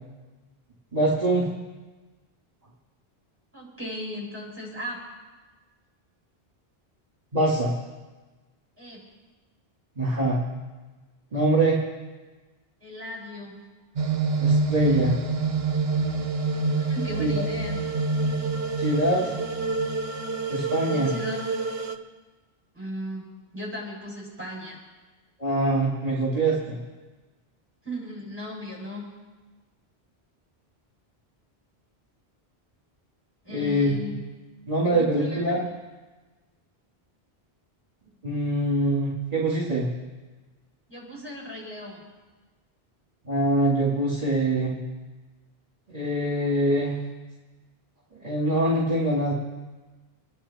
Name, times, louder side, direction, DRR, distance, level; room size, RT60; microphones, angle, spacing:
voice 1, 0.9-1.5 7.3-7.7 10.0-10.4 11.3-11.8 14.4-15.2 17.2-17.4 18.8-19.3 20.5-21.1 25.4-26.8 33.5-34.0 34.7-35.6 38.2-39.9 43.3-44.8 45.9-47.0 48.2-49.3, right 1 dB, 40° right, -5 dB, 2.5 m, -24 dB
voice 2, 3.5-5.0 8.8-9.0 12.8-13.6 16.9-17.8 20.9-21.4 22.7-23.3 23.5-24.8 27.8-29.0 33.4-34.2 34.8-35.5 40.9-42.0, equal, 10° right, -5 dB, 7.0 m, -36 dB
sound 1, 14.0-22.0, right 3 dB, 75° right, 1.3 m, -27 dB
27.5 x 10.5 x 4.3 m, 1.3 s
omnidirectional pair, 1.1 m